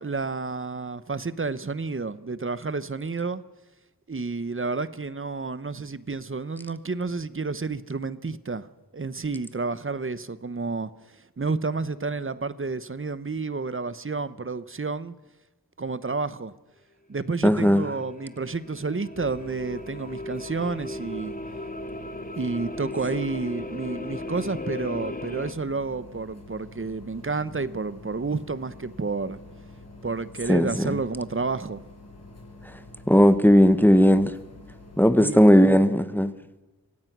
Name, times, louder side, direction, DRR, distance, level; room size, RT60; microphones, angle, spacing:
voice 1, 0.0-3.4 4.1-8.7 8.9-10.9 11.4-15.1 15.8-16.5 17.1-21.3 22.3-29.4 30.0-31.8 35.2-35.4, right 4 dB, 35° right, 1.0 m, -30 dB
voice 2, 17.4-17.8 30.5-31.0 33.1-34.3 35.0-36.3, equal, 5° left, 1.1 m, -17 dB
sound 1, 17.6-25.5, left 1 dB, 20° left, 2.0 m, -36 dB
sound 2, 19.1-35.0, left 2 dB, 45° left, 5.8 m, -47 dB
25.0 x 17.5 x 6.1 m
wide cardioid pair, 75°, 37 cm